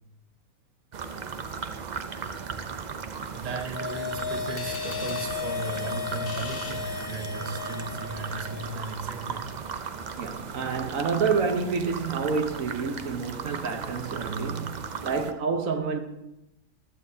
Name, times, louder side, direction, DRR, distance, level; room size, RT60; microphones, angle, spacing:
sound 1, 0.9-15.3, right 5 dB, 50° right, 0.5 m, -37 dB
voice 1, 3.3-9.5, right 4 dB, 30° right, 1.0 m, -36 dB
sound 2, 3.4-8.9 9.2-9.3, left 7 dB, 40° left, 1.5 m, -35 dB
sound 3, 4.6-7.6, left 4 dB, 70° left, 1.9 m, -42 dB
voice 2, 10.2-16.0, right 5 dB, 65° right, 1.3 m, -28 dB
15.0 x 12.0 x 2.7 m
omnidirectional pair, 1.5 m